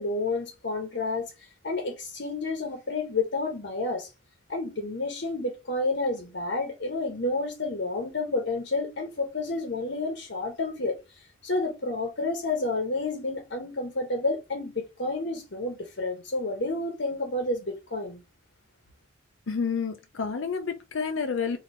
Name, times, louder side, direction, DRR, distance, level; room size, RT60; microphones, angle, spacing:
voice 1, 0.0-4.1 4.5-18.2, left 2 dB, 65° left, 1.0 m, -30 dB
voice 2, 19.5-21.6, left 5 dB, 80° left, 0.6 m, -29 dB
4.2 x 2.8 x 3.1 m
head